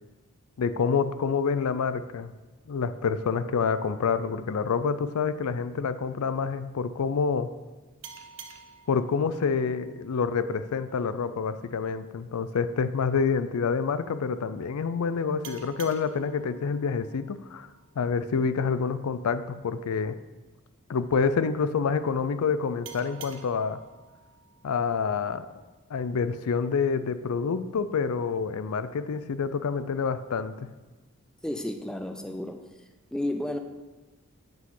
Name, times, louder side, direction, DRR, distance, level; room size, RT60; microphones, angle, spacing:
voice 1, 0.6-2.3 2.7-7.5 8.9-17.7 18.0-20.2 20.9-23.8 24.6-25.5 25.9-30.5, left 5 dB, 80° left, 12 dB, 0.4 m, -27 dB
sound 1, 8.0-11.3 15.4-18.7 22.8-25.8, right 6 dB, 55° right, 0.6 m, -50 dB
voice 2, 31.4-32.7 33.1-33.6, left 1 dB, 5° left, 6 dB, 0.4 m, -32 dB
8.8 x 5.9 x 3.8 m, 1.2 s
head